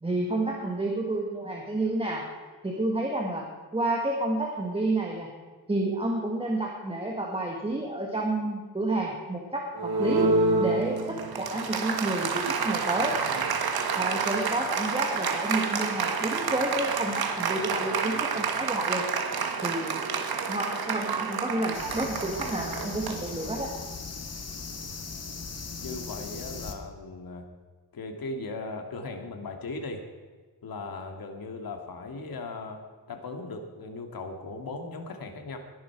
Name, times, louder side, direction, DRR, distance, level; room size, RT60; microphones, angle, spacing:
voice 1, 0.0-2.2 2.6-3.4 3.7-5.3 5.7-10.3 10.6-13.1 14.0-19.1 19.6-19.9 20.5-23.7, right 2 dB, 15° right, -1 dB, 1.8 m, -30 dB
Applause, 9.8-23.8, right 4 dB, 75° right, 1.5 m, -29 dB
sound 1, 21.7-26.7, left 4 dB, 40° left, 1.7 m, -38 dB
voice 2, 25.8-27.4 27.9-30.0 30.6-32.8 33.1-35.6, left 3 dB, 70° left, 4 dB, 2.2 m, -38 dB
21.0 x 11.0 x 4.7 m, 1.4 s
wide cardioid pair, 145°, 37 cm